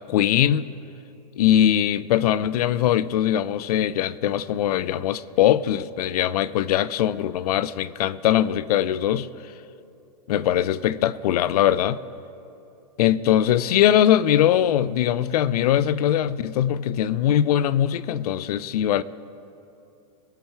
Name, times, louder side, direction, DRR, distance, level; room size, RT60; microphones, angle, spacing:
voice 1, 0.1-0.7 1.4-9.3 10.3-12.0 13.0-19.0, left 11 dB, 65° left, 0.5 m, -21 dB
21.5 x 8.1 x 4.5 m
hypercardioid pair, 140°, 21 cm